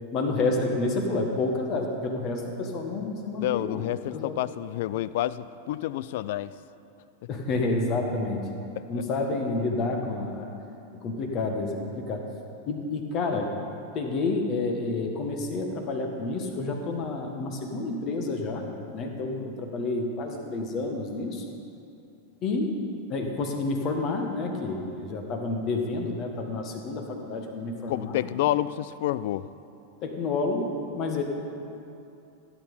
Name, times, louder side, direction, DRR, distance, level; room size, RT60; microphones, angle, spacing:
voice 1, 0.1-3.8 4.1-4.4 7.3-8.5 8.9-10.5 11.0-12.2 12.6-13.5 13.9-18.7 18.9-21.4 22.4-22.7 23.1-28.3 30.0-31.2, left 3 dB, 35° left, 3 dB, 1.7 m, -29 dB
voice 2, 3.4-6.5 27.9-29.5, left 13 dB, 50° left, 17 dB, 0.3 m, -29 dB
16.0 x 8.9 x 5.6 m, 2.8 s
figure-of-eight pair, 90°, 0 cm